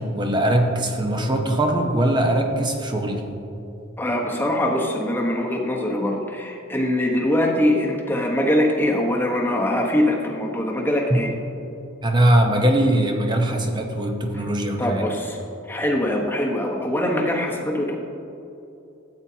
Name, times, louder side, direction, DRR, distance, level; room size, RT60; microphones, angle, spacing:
voice 1, 0.0-3.2 11.1-11.2 12.0-15.1, right 1 dB, 20° right, 3 dB, 0.8 m, -21 dB
voice 2, 4.0-11.3 14.8-15.4 15.7-18.0, left 1 dB, 10° left, -1 dB, 1.1 m, -22 dB
13.0 x 8.7 x 2.8 m, 2.8 s
head